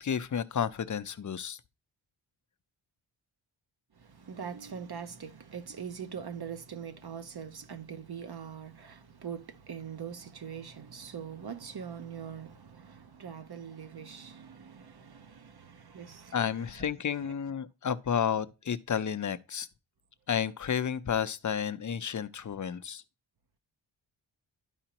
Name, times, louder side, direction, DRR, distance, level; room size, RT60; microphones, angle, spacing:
voice 1, 0.0-1.6 16.3-19.7 20.3-23.0, left 8 dB, 40° left, 0.6 m, -31 dB
voice 2, 4.0-16.9 17.2-17.3, right 7 dB, 55° right, 0.8 m, -43 dB
11.5 x 4.9 x 2.8 m
wide cardioid pair, 120°, 47 cm